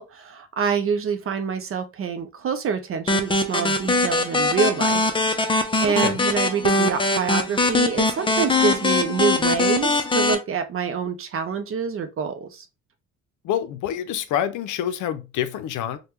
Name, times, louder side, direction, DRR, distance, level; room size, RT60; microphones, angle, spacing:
voice 1, 0.0-5.0 5.4-12.7, right 6 dB, 45° right, 0.5 m, -26 dB
sound 1, 3.1-10.4, left 2 dB, 15° left, 0.5 m, -22 dB
voice 2, 5.8-6.2 13.4-16.0, left 10 dB, 80° left, 0.5 m, -27 dB
3.4 x 2.2 x 2.9 m
cardioid pair, 90°, 30 cm